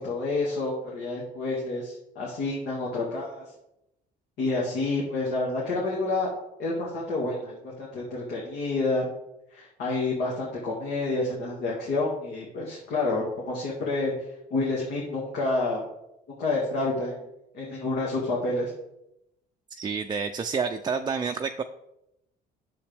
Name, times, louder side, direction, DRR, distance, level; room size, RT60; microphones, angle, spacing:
voice 1, 0.0-3.4 4.4-6.3 6.6-9.0 9.5-14.1 14.5-15.8 16.3-17.2 17.5-18.7, left 2 dB, 75° left, -4 dB, 2.0 m, -29 dB
voice 2, 19.7-21.6, right 5 dB, 25° right, 5 dB, 0.4 m, -29 dB
8.7 x 7.1 x 3.4 m, 0.86 s
cardioid pair, 110°, 17 cm